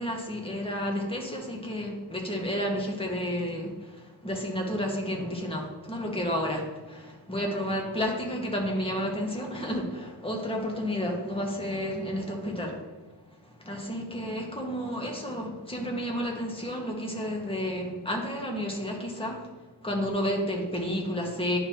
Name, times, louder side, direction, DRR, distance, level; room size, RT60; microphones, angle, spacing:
voice 1, 0.0-12.8 13.4-19.5 19.8-21.6, equal, 15° left, 0 dB, 1.6 m, -31 dB
10.5 x 3.7 x 2.9 m, 1.3 s
cardioid pair, 85°, 42 cm